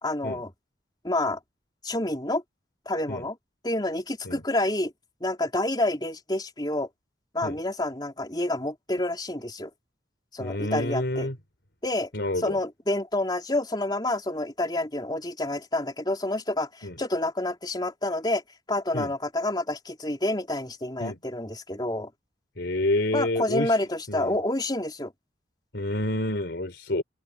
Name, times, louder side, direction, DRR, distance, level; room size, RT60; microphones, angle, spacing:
voice 1, 0.0-0.5 1.0-1.4 1.8-2.4 2.9-3.4 3.6-4.9 5.2-6.9 7.3-9.7 10.3-11.3 11.8-12.1 12.4-18.4 18.7-22.1 23.1-25.1, left 1 dB, 25° left, 3.7 m, -28 dB
voice 2, 10.4-11.4 12.1-12.6 16.8-17.0 18.9-19.1 21.0-21.2 22.6-23.7 24.1-24.4 25.7-27.0, left 1 dB, 75° left, 3.4 m, -28 dB
open air
head